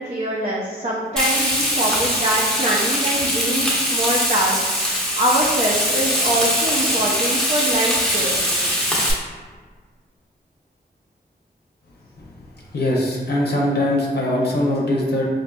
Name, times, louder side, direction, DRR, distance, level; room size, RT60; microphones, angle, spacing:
voice 1, 0.0-8.6, right 1 dB, 40° right, -6 dB, 0.5 m, -24 dB
Frying (food), 1.2-9.1, equal, 5° left, 0.8 m, -21 dB
voice 2, 12.7-15.2, left 1 dB, 70° left, -3 dB, 0.6 m, -21 dB
3.8 x 2.6 x 2.2 m, 1.5 s
cardioid pair, 55°, 18 cm